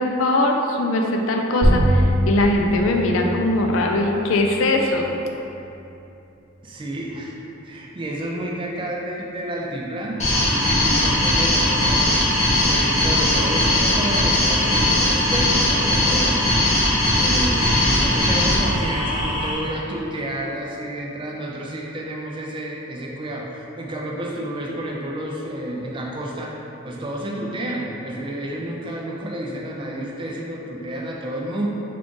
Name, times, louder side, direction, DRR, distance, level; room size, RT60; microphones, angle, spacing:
voice 1, 0.0-5.1, left 1 dB, 80° left, 2 dB, 0.4 m, -21 dB
sound 1, 1.6-6.7, equal, 80° right, 0.7 m, -25 dB
voice 2, 6.6-7.3 7.6-12.1 12.6-16.5 17.1-26.5 26.8-31.7, right 1 dB, 25° right, -2 dB, 0.3 m, -30 dB
sound 2, 10.2-19.5, left 1 dB, 35° left, 0.7 m, -19 dB
3.7 x 2.4 x 3.7 m, 2.9 s
head